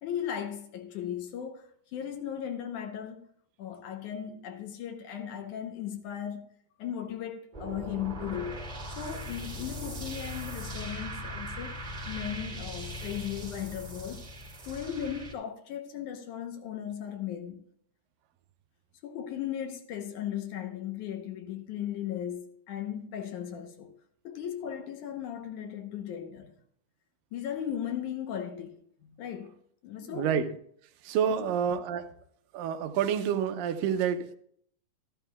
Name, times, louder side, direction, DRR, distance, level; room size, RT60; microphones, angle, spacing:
voice 1, 0.0-3.3 3.6-6.5 6.8-8.7 9.0-14.2 14.6-17.6 19.0-23.9 24.2-26.6 27.3-29.6 29.8-30.3 31.4-31.5, left 9 dB, 70° left, 2.3 m, -37 dB
sound 1, 7.5-15.3, equal, 15° right, 1.6 m, -39 dB
voice 2, 30.0-30.5 31.0-32.1 32.5-34.4, right 8 dB, 90° right, 2.4 m, -28 dB
13.5 x 12.0 x 2.3 m
omnidirectional pair, 3.8 m